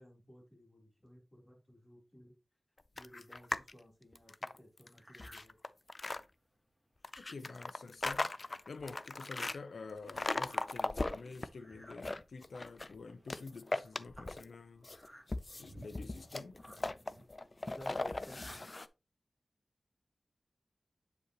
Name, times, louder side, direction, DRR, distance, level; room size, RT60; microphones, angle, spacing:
voice 1, 0.0-2.4 2.9-5.5 17.6-18.7, equal, 20° left, 3.6 m, -56 dB
sound 1, 3.0-3.7 4.1-6.2 7.0-9.6 10.1-11.5 11.8-12.9 13.3-14.5 14.8-18.9, left 2 dB, 40° left, 0.4 m, -38 dB
sound 2, 4.9-5.5 6.0-6.1 6.7-6.8 7.0-7.3 8.0-8.1 8.5-18.7, right 1 dB, ahead, 2.2 m, -59 dB
voice 2, 7.2-8.3 8.7-14.9 15.6-16.6, left 4 dB, 90° left, 0.7 m, -48 dB
8.2 x 5.2 x 3.0 m
wide cardioid pair, 65°, 0 cm